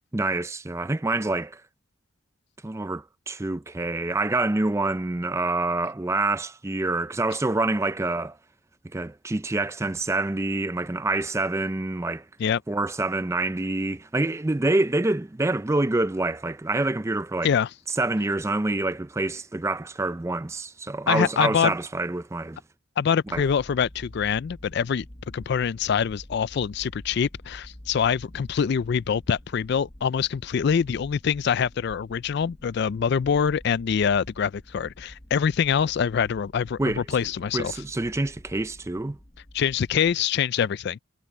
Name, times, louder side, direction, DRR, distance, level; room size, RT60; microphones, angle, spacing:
voice 1, 0.1-1.6 2.6-8.4 8.9-12.2 12.7-17.5 18.0-22.6 23.3-23.4 36.8-37.2 37.5-39.2, right 2 dB, 15° right, 0.4 m, -26 dB
voice 2, 21.1-21.7 23.0-25.1 25.3-37.7 39.5-41.0, left 7 dB, 55° left, 0.3 m, -24 dB
sound 1, 23.3-40.2, left 1 dB, 25° left, 1.2 m, -47 dB
head